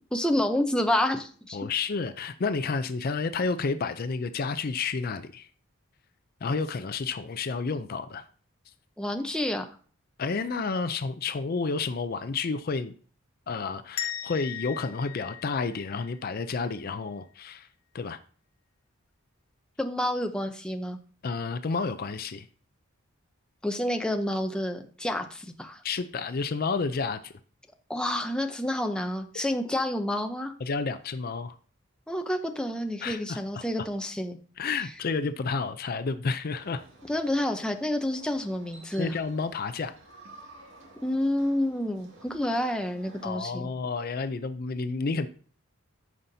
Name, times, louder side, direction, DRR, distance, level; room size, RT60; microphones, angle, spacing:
voice 1, 0.1-1.6 9.0-9.7 19.8-21.0 23.6-25.8 27.9-30.5 32.1-34.4 37.1-39.1 41.0-43.7, left 1 dB, 5° left, 5 dB, 0.7 m, -29 dB
voice 2, 1.5-5.5 6.4-8.3 10.2-12.9 13.5-17.7 17.9-18.2 21.2-22.5 25.8-27.3 30.6-31.6 33.0-33.9 34.6-36.8 39.0-39.9 43.2-45.3, left 4 dB, 45° left, 10 dB, 0.4 m, -30 dB
sound 1, 14.0-16.7, left 10 dB, 85° left, 1.3 m, -38 dB
sound 2, 36.5-43.4, right 2 dB, 65° right, 2.1 m, -52 dB
14.0 x 5.6 x 2.7 m, 0.44 s
head